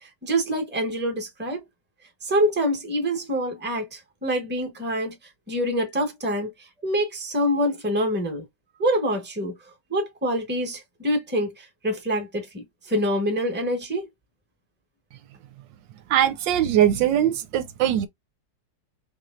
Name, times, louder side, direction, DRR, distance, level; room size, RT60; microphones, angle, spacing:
voice 1, 0.0-1.6 2.2-5.2 5.5-6.5 6.8-8.4 8.8-9.5 9.9-14.1, equal, 5° right, 1.0 m, -26 dB
voice 2, 16.1-18.1, right 11 dB, 75° right, 1.3 m, -21 dB
4.3 x 3.1 x 2.5 m
omnidirectional pair, 2.1 m